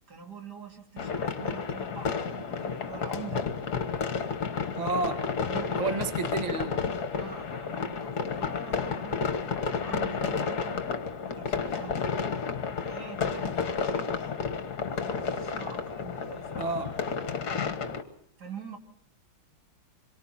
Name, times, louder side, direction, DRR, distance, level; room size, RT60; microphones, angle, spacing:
voice 1, 0.1-3.5 5.4-6.1 7.1-9.4 9.8-10.8 11.2-12.1 12.8-14.3 14.9-16.8 17.1-18.0 18.4-18.8, right 6 dB, 45° right, 3 dB, 3.5 m, -45 dB
sound 1, 1.0-18.0, left 5 dB, 50° left, 1.8 m, -31 dB
voice 2, 4.8-5.3 5.8-6.8 16.6-16.9, right 3 dB, 20° right, 6 dB, 1.4 m, -30 dB
26.5 x 23.0 x 4.2 m, 0.71 s
omnidirectional pair, 2.4 m